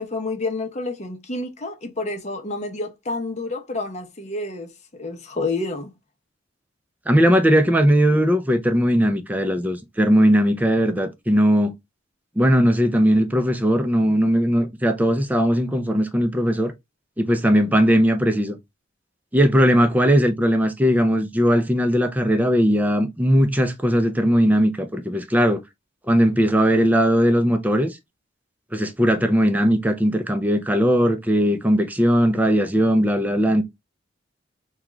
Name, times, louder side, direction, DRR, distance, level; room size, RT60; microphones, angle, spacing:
voice 1, 0.0-4.7 5.0-5.9, left 2 dB, 35° left, 0.8 m, -29 dB
voice 2, 7.1-11.7 12.4-16.7 17.2-18.6 19.3-25.6 26.1-28.0 28.7-33.6, equal, 10° right, 0.5 m, -19 dB
3.7 x 2.3 x 3.0 m
head